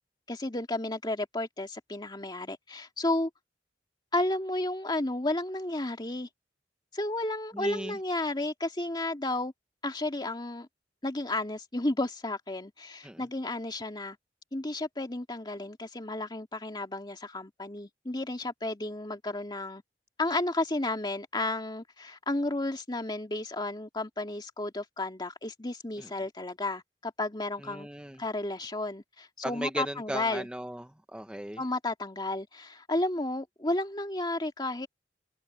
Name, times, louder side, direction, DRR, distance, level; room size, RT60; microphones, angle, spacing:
voice 1, 0.3-3.3 4.1-6.3 6.9-9.5 9.8-10.7 11.0-14.2 14.5-19.8 20.2-27.9 28.2-30.5 31.6-34.9, left 2 dB, 25° left, 2.1 m, -32 dB
voice 2, 7.5-8.0 13.0-13.2 26.0-26.1 27.6-28.2 29.4-31.6, right 1 dB, 5° right, 0.9 m, -37 dB
head